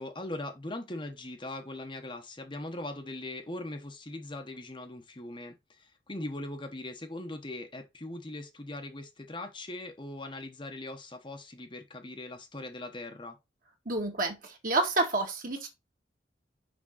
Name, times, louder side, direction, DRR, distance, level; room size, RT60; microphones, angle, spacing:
voice 1, 0.0-13.4, left 2 dB, 25° left, 1.0 m, -40 dB
voice 2, 13.9-15.7, right 2 dB, 45° right, 1.9 m, -29 dB
6.2 x 5.3 x 3.9 m
head